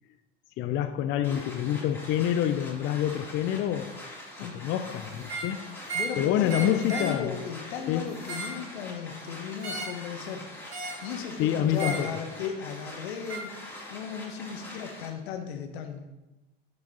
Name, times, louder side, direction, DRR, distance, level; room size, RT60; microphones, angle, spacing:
voice 1, 0.6-4.0 4.5-5.7 6.2-7.3 7.9-8.1 11.4-12.1, left 11 dB, 35° left, 0.4 m, -27 dB
sound 1, 1.2-15.1, left 1 dB, 5° left, 2.2 m, -44 dB
sound 2, 5.2-5.5 5.9-6.2 6.5-7.2 8.1-8.6 9.6-10.0 10.7-11.1 11.7-12.1 13.3-13.5, right 3 dB, 75° right, 2.4 m, -35 dB
voice 2, 5.9-10.4 11.0-13.6 13.9-16.1, left 7 dB, 70° left, 1.0 m, -36 dB
11.0 x 4.8 x 2.8 m
hypercardioid pair, 90°, 32 cm